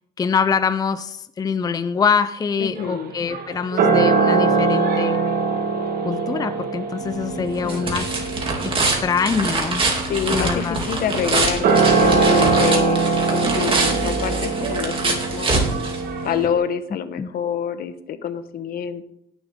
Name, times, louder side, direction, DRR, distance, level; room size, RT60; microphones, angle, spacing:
voice 1, 0.2-5.2 6.0-8.1 8.6-9.8 10.3-10.8 17.2-17.3, left 6 dB, 20° left, 11 dB, 0.5 m, -24 dB
voice 2, 2.6-3.1 7.3-8.1 10.1-15.6 16.2-19.0, left 8 dB, 60° left, 11 dB, 1.0 m, -27 dB
sound 1, 2.8-16.5, right 4 dB, 60° right, 1.7 m, -22 dB
sound 2, 7.0-16.5, right 3 dB, 30° right, 2.7 m, -24 dB
17.5 x 7.1 x 3.7 m, 0.76 s
cardioid pair, 110°, 17 cm